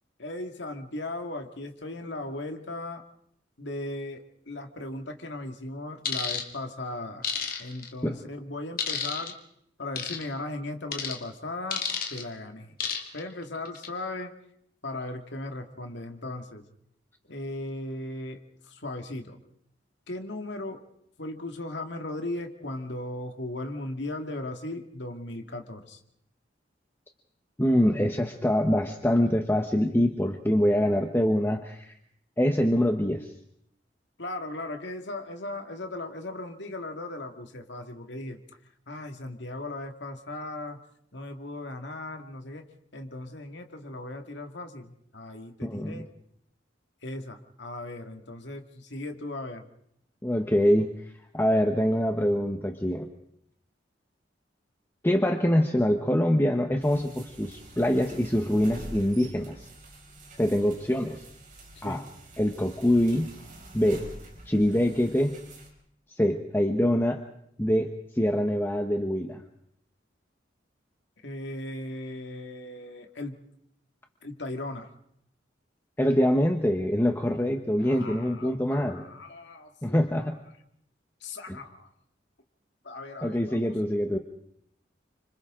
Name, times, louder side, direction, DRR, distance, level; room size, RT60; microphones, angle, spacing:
voice 1, 0.2-3.0 3.6-7.3 7.6-9.4 9.8-11.8 12.1-12.7 13.1-14.3 14.8-16.7 17.3-19.4 20.1-20.8 21.2-26.0 34.2-38.4 38.9-40.8 41.1-42.7 42.9-46.1 47.0-49.7 61.7-62.1 71.2-73.4 74.2-74.9 77.8-80.3 81.2-81.9 82.8-83.8, left 2 dB, 70° left, 4 dB, 2.1 m, -37 dB
dice comp, 6.0-6.4 7.2-7.9 8.8-9.3 10.0-10.2 10.9-11.2 11.7-12.2 12.8-13.2 13.6-13.9, left 7 dB, 50° left, 2.5 m, -30 dB
voice 2, 27.6-31.9 32.4-33.3 45.6-45.9 50.2-50.9 51.3-53.1 55.0-59.7 60.4-61.2 61.8-62.0 62.4-63.3 63.7-64.0 64.5-65.3 66.1-67.2 67.6-69.4 76.0-79.0 79.8-80.3 81.5-81.6 83.2-84.2, equal, 10° left, 4 dB, 1.1 m, -24 dB
sound 1, 56.8-65.7, right 1 dB, 45° right, 5.0 m, -46 dB
29.5 x 26.0 x 3.8 m, 0.73 s
head